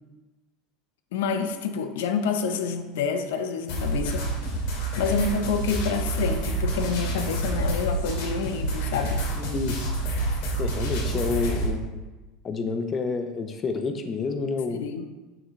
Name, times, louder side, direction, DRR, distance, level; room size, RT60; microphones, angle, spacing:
voice 1, 1.1-4.3 5.0-9.2 14.7-15.0, left 5 dB, 85° left, 7 dB, 0.8 m, -28 dB
sound 1, 3.7-11.7, right 1 dB, 70° left, 2.9 m, -28 dB
voice 2, 9.4-9.9 10.6-12.0 12.4-14.8, left 4 dB, 25° left, 7 dB, 0.7 m, -29 dB
9.2 x 6.3 x 3.2 m, 1.2 s
supercardioid pair, 135°, 0 cm